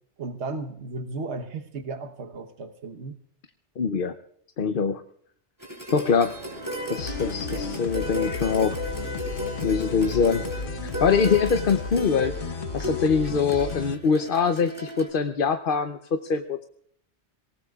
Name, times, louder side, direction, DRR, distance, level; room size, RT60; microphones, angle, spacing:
voice 1, 0.2-3.1 10.0-10.3, right 3 dB, 75° right, 6 dB, 1.4 m, -35 dB
voice 2, 3.8-4.1 4.6-5.0 5.9-6.3 6.9-8.8 9.6-10.5 10.8-16.6, left 5 dB, 55° left, 8 dB, 0.9 m, -24 dB
sound 1, 5.6-15.1, left 1 dB, 15° right, 3.8 m, -35 dB
sound 2, 6.1-13.4, right 3 dB, 55° right, 1.9 m, -42 dB
sound 3, 7.0-13.9, left 5 dB, 70° left, 1.2 m, -34 dB
26.5 x 18.5 x 2.4 m, 0.66 s
omnidirectional pair, 1.2 m